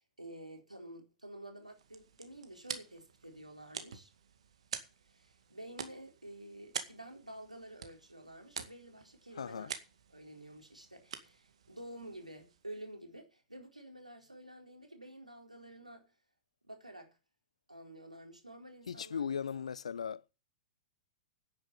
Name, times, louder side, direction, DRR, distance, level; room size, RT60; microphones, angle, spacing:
voice 1, 0.0-4.1 5.0-9.7 10.1-16.1 16.6-17.2 17.7-19.5, right 1 dB, 85° right, 4.1 m, -50 dB
sound 1, 1.6-12.8, right 7 dB, 60° right, 2.0 m, -48 dB
voice 2, 9.3-9.7 18.9-20.2, left 7 dB, 65° left, 0.8 m, -38 dB
10.5 x 9.7 x 7.1 m
figure-of-eight pair, 105°, 4 cm